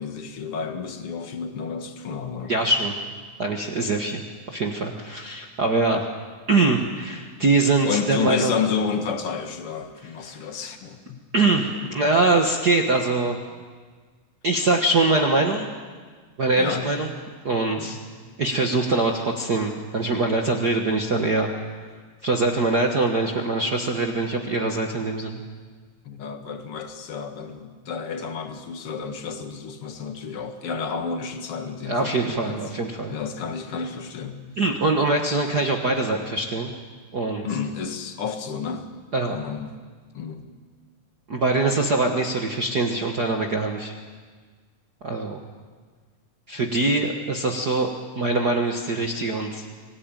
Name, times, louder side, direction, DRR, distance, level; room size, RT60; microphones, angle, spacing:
voice 1, 0.0-2.5 3.8-3.9 7.8-11.2 11.8-11.9 16.6-16.9 17.7-18.0 26.1-32.6 33.1-34.4 37.4-38.9 39.3-39.7 40.1-40.4, left 6 dB, 50° left, 6 dB, 2.1 m, -30 dB
voice 2, 2.4-2.9 3.4-4.2 4.5-6.1 6.5-8.6 10.3-10.4 11.3-13.4 14.4-15.7 16.4-17.1 17.4-18.0 18.4-21.5 22.2-25.4 31.8-33.1 34.6-36.7 37.1-37.5 39.1-39.4 41.3-43.9 45.0-45.4 46.5-47.9 48.1-49.7, right 3 dB, 65° right, 2 dB, 0.9 m, -23 dB
25.0 x 17.5 x 9.1 m, 1.5 s
omnidirectional pair, 4.1 m